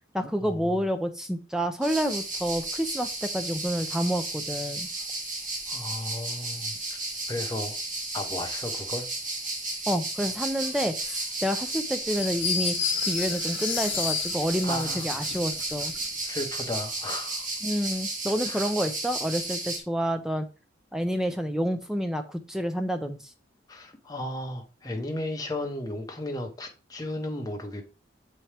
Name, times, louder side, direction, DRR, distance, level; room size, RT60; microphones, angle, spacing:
voice 1, 0.1-4.9 9.9-12.8 13.0-15.9 17.6-20.5 20.9-23.2, equal, 5° right, 0.4 m, -29 dB
sound 1, 1.8-19.8, right 2 dB, 45° right, 1.4 m, -33 dB
voice 2, 5.7-6.7 7.3-7.8 8.1-9.1 14.6-15.1 16.2-17.5 18.4-18.7 23.7-27.8, left 1 dB, 20° left, 0.9 m, -34 dB
sound 2, 12.1-16.1, left 8 dB, 70° left, 0.8 m, -32 dB
7.0 x 4.2 x 3.3 m
head